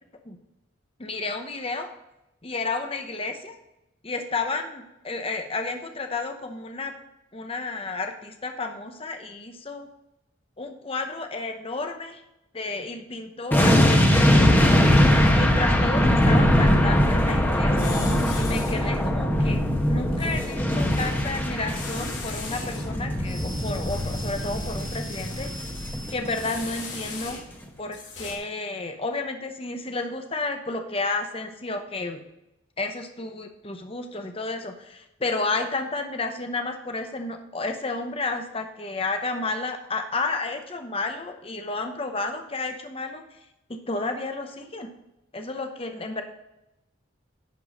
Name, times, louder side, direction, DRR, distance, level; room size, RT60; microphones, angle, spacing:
voice 1, 1.0-1.9 2.4-3.6 4.0-6.9 7.3-9.9 10.6-12.2 12.5-14.8 15.3-17.9 18.3-19.6 19.9-25.5 26.1-27.4 27.8-32.2 32.8-43.2 43.7-44.9 45.3-46.2, left 3 dB, 30° left, 5 dB, 0.8 m, -31 dB
sound 1, 13.5-26.7 26.9-27.1, equal, 10° left, 1.1 m, -21 dB
sound 2, 17.8-18.9 20.1-21.1 21.7-22.8 23.2-27.6 27.9-28.3, left 3 dB, 60° left, 3.3 m, -39 dB
11.0 x 4.6 x 6.4 m, 0.89 s
head